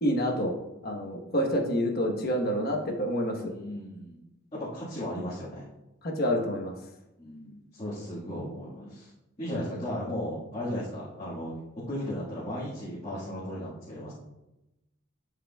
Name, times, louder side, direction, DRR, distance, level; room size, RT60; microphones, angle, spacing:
voice 1, 0.0-0.5 0.8-3.5 6.0-6.7, equal, 50° left, 2 dB, 1.2 m, -28 dB
voice 2, 3.4-4.2 4.5-5.7 7.2-9.1 9.4-14.1, equal, 30° left, -9 dB, 1.7 m, -36 dB
11.0 x 4.9 x 2.3 m, 0.93 s
head